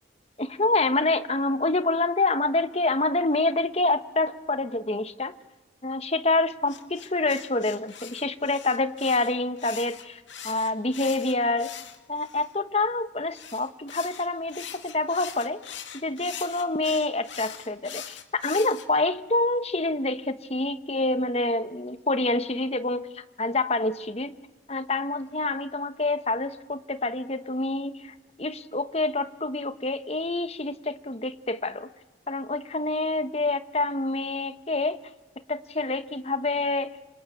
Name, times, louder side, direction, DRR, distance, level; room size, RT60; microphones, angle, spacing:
voice 1, 0.4-5.3 5.8-11.7 12.1-15.6 15.9-24.3 24.7-31.9 32.3-35.0 35.5-37.0, left 2 dB, 35° left, 12 dB, 1.1 m, -27 dB
sound 1, 6.7-12.5 13.3-18.9, left 9 dB, 80° left, 2.2 m, -42 dB
27.0 x 26.0 x 8.5 m, 1.2 s
head